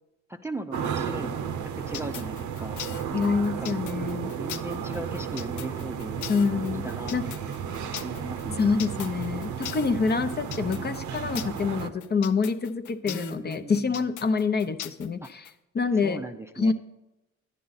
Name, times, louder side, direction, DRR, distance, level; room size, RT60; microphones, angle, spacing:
voice 1, 0.3-2.8 3.6-3.7 4.4-6.2 6.7-7.6 8.0-8.7 13.1-14.0 15.2-15.3 16.0-16.7, right 2 dB, 10° right, 5 dB, 0.5 m, -38 dB
sound 1, 0.7-11.9, right 7 dB, 75° right, 0.8 m, -33 dB
sound 2, 1.9-15.5, left 12 dB, 75° left, 0.5 m, -40 dB
voice 2, 3.1-4.4 6.3-7.3 8.6-15.5 15.7-16.2 16.6-16.7, left 5 dB, 35° left, 10 dB, 0.7 m, -26 dB
11.0 x 10.0 x 4.0 m, 0.92 s
cardioid pair, 90°, 30 cm